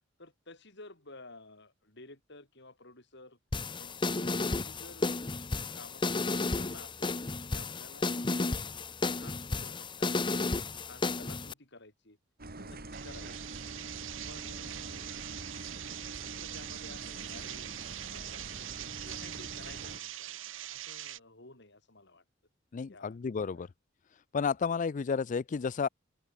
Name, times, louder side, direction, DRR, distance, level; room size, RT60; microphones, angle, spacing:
voice 1, 0.2-3.4 3.8-5.5 5.8-7.1 7.5-8.6 9.1-12.2 12.6-13.4 14.3-15.2 16.2-17.7 18.1-18.6 18.9-20.4 20.7-22.2 22.9-23.2 23.5-23.7, left 2 dB, 60° left, 7.7 m, -53 dB
sound 1, 3.5-11.5, left 3 dB, 25° left, 0.8 m, -33 dB
sound 2, 12.4-20.0, right 2 dB, 50° right, 4.0 m, -45 dB
sound 3, 12.9-21.2, right 13 dB, 70° right, 1.4 m, -43 dB
voice 2, 22.7-23.7 24.3-25.9, left 5 dB, 40° left, 0.4 m, -31 dB
open air
head